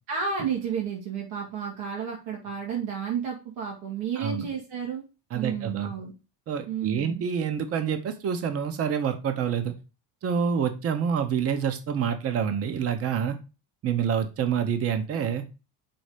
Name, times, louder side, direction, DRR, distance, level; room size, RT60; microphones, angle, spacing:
voice 1, 0.1-5.0 5.3-6.1 6.7-7.2, right 7 dB, 85° right, -2 dB, 2.6 m, -31 dB
voice 2, 4.2-4.5 5.3-5.9 6.5-9.7 10.2-13.4 13.8-15.4, right 7 dB, 35° right, 8 dB, 0.9 m, -27 dB
6.0 x 4.1 x 5.0 m, 0.30 s
cardioid pair, 160°, 41 cm